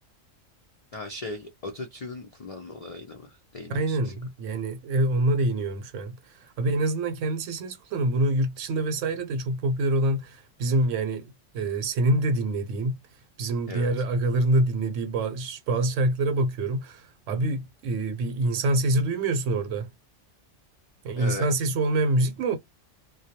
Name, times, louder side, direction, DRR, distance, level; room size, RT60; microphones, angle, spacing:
voice 1, 0.9-4.1 13.7-13.9 21.2-21.5, left 2 dB, 70° left, 0.3 m, -38 dB
voice 2, 3.7-13.0 13.4-19.9 21.0-22.6, right 2 dB, 85° right, 1.0 m, -26 dB
2.2 x 2.2 x 2.7 m
omnidirectional pair, 1.3 m